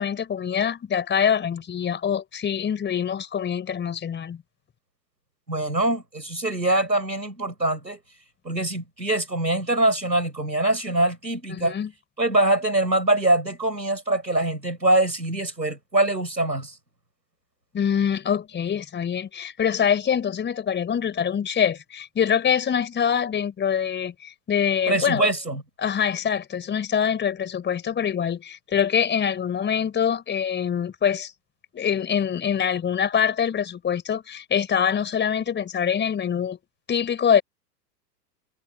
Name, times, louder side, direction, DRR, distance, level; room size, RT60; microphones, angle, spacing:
voice 1, 0.0-4.4 11.5-11.9 17.7-25.3 25.8-31.3 31.7-36.6 36.9-37.4, left 8 dB, 20° left, 4.3 m, -24 dB
voice 2, 5.5-8.0 8.4-11.8 12.2-16.7 24.9-25.6, right 2 dB, 85° right, 6.4 m, -23 dB
figure-of-eight pair, 90°, 50 cm